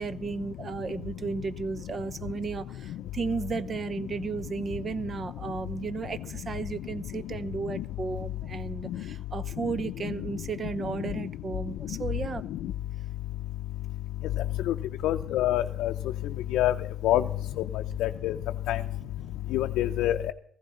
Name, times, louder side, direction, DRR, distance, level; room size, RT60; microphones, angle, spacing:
voice 1, 0.0-12.4, right 4 dB, 45° right, 0.8 m, -34 dB
voice 2, 15.0-15.9 16.5-16.7 17.0-17.2 18.0-18.3 18.7-18.8 19.5-20.3, left 13 dB, 90° left, 0.5 m, -25 dB
15.5 x 15.0 x 4.3 m
cardioid pair, 90°, 0 cm